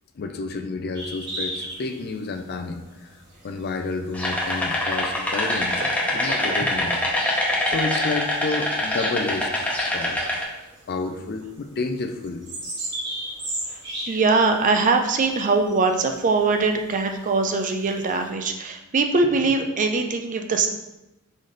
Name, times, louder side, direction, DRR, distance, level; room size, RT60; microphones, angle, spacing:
voice 1, 0.1-3.2 3.4-5.8 6.1-7.0 7.7-10.2 10.9-12.4, left 3 dB, 50° left, 7 dB, 0.4 m, -30 dB
sound 1, 0.9-18.3, right 1 dB, 55° right, 1.3 m, -39 dB
sound 2, 4.1-10.4, left 1 dB, 5° left, 0.7 m, -24 dB
voice 2, 6.1-6.5 14.1-20.7, right 3 dB, 40° right, 5 dB, 0.4 m, -22 dB
4.0 x 3.8 x 3.2 m, 0.95 s
head